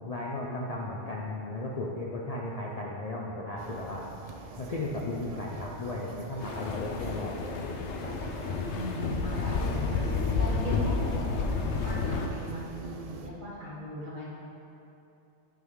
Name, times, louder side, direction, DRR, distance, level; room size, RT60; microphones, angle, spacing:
voice 1, 0.0-4.0 4.6-8.1 9.3-9.7, left 2 dB, 45° left, -3 dB, 0.5 m, -35 dB
sound 1, 3.6-13.3, right 4 dB, 75° right, 0.3 m, -45 dB
sound 2, 6.4-12.3, left 4 dB, 75° left, 0.9 m, -30 dB
voice 2, 8.8-10.1 10.4-14.3, equal, 45° right, -6 dB, 1.5 m, -38 dB
8.3 x 3.9 x 4.6 m, 2.8 s
omnidirectional pair, 1.2 m